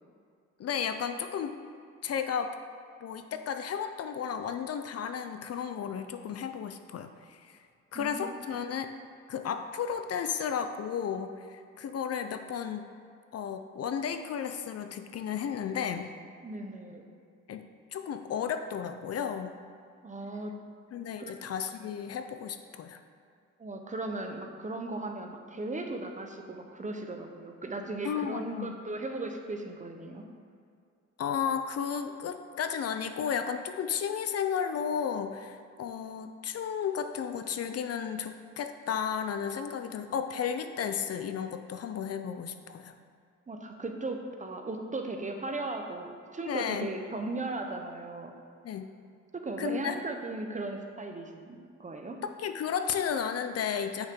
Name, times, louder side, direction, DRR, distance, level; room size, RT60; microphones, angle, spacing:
voice 1, 0.6-1.5 2.0-2.5 3.0-7.6 7.9-8.9 9.3-12.9 13.3-16.1 17.5-17.7 17.9-19.5 20.9-23.0 28.0-28.7 31.2-42.9 46.5-46.9 48.6-48.9 49.6-50.0 52.2-54.1, left 7 dB, 55° left, 8 dB, 0.6 m, -33 dB
voice 2, 7.9-8.3 16.4-17.0 20.0-20.5 21.2-21.3 23.6-30.2 43.5-48.3 49.3-52.2, right 2 dB, 25° right, 4 dB, 0.9 m, -37 dB
8.6 x 6.4 x 3.7 m, 2.3 s
cardioid pair, 90°, 30 cm